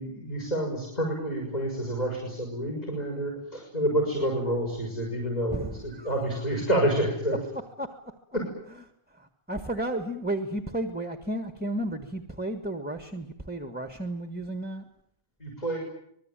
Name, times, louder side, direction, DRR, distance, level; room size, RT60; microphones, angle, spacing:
voice 1, 0.0-7.4 8.3-8.4 15.4-15.8, right 1 dB, 35° left, -1 dB, 6.6 m, -28 dB
voice 2, 5.5-6.1 7.8-8.0 9.1-14.8, right 1 dB, 10° right, 8 dB, 1.6 m, -33 dB
25.5 x 20.5 x 9.1 m, 0.73 s
omnidirectional pair, 1.2 m